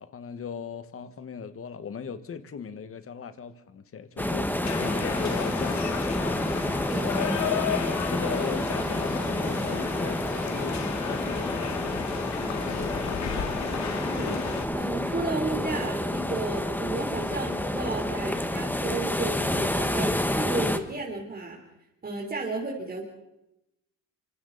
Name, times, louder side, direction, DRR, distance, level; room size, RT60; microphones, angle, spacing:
voice 1, 0.0-7.7 8.1-13.6, left 6 dB, 45° left, 1.6 m, -38 dB
sound 1, 4.2-20.8, left 1 dB, 5° left, 1.6 m, -29 dB
sound 2, 4.6-14.7, left 8 dB, 65° left, 2.0 m, -34 dB
voice 2, 14.0-21.6 22.0-23.0, right 2 dB, 30° right, 3.9 m, -33 dB
25.5 x 25.5 x 4.2 m
cardioid pair, 90°, 30 cm